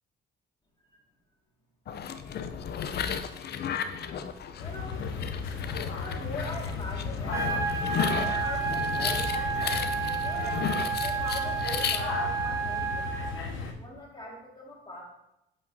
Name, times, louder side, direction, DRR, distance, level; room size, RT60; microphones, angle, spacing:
sound 1, 1.9-12.0, left 7 dB, 55° left, 0.5 m, -34 dB
sound 2, 4.6-13.7, left 5 dB, 85° left, 0.8 m, -36 dB
voice 1, 4.6-9.3 10.2-15.0, left 1 dB, 25° left, -2 dB, 2.0 m, -42 dB
sound 3, 7.3-13.3, right 6 dB, 15° right, 0.9 m, -31 dB
8.2 x 5.0 x 2.7 m, 0.85 s
cardioid pair, 90°, 20 cm